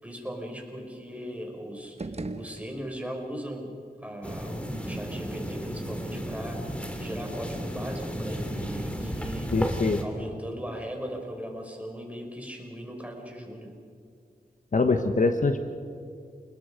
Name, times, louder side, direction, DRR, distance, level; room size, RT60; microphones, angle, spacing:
voice 1, 0.0-9.5 10.0-13.7, equal, 10° right, 1 dB, 5.8 m, -38 dB
sound 1, 1.8-3.3, right 3 dB, 40° right, 1.3 m, -39 dB
Walking on salt, 4.2-10.0, equal, 5° left, 2.9 m, -33 dB
voice 2, 9.5-10.0 14.7-15.6, left 3 dB, 50° left, 7 dB, 1.2 m, -23 dB
29.5 x 21.0 x 5.2 m, 2.3 s
cardioid pair, 50°, 17 cm